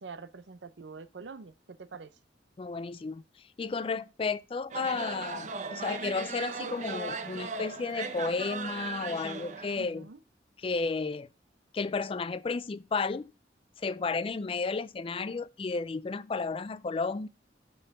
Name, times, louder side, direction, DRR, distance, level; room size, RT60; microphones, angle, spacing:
voice 1, 0.0-2.2 9.8-10.2, right 4 dB, 75° right, 0.6 m, -45 dB
voice 2, 2.6-3.2 3.6-10.1 10.6-11.3 11.7-13.3 13.8-17.3, left 4 dB, 30° left, 0.3 m, -33 dB
sound 1, 4.7-9.8, right 4 dB, 40° right, 0.7 m, -38 dB
6.7 x 5.5 x 4.7 m
head